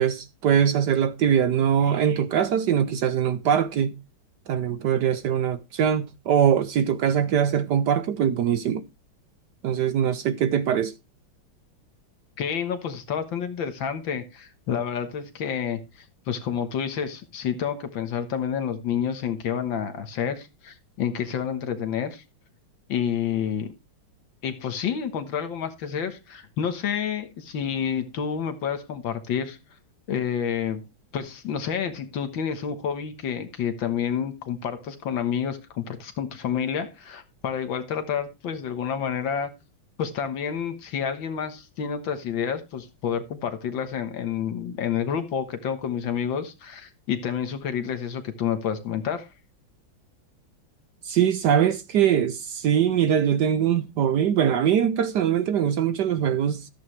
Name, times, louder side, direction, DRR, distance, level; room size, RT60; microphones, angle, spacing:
voice 1, 0.0-4.0 4.5-8.8 9.6-10.9 51.0-56.7, right 9 dB, 65° right, 1.1 m, -22 dB
voice 2, 12.4-15.8 16.3-22.2 22.9-23.7 24.4-29.6 30.1-30.8 31.1-39.5 40.0-49.3, left 8 dB, 70° left, 2.0 m, -29 dB
13.5 x 7.6 x 3.3 m
omnidirectional pair, 2.3 m